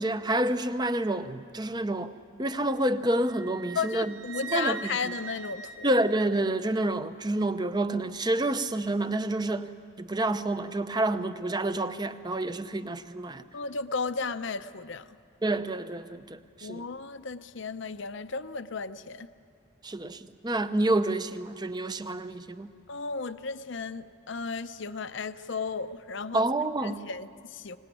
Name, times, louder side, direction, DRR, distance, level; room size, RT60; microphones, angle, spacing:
voice 1, 0.0-2.1 2.4-4.1 4.5-4.8 5.8-9.7 10.0-13.4 15.4-16.9 19.8-22.7 26.3-27.0, right 1 dB, 20° right, 11 dB, 0.7 m, -28 dB
Wind instrument woodwind instrument, 3.2-6.7, right 6 dB, 70° right, 4.9 m, -42 dB
voice 2, 3.7-5.9 13.5-15.1 16.6-19.3 22.9-26.5 26.8-27.8, left 4 dB, 60° left, 12 dB, 0.6 m, -34 dB
24.5 x 18.5 x 9.9 m, 2.2 s
head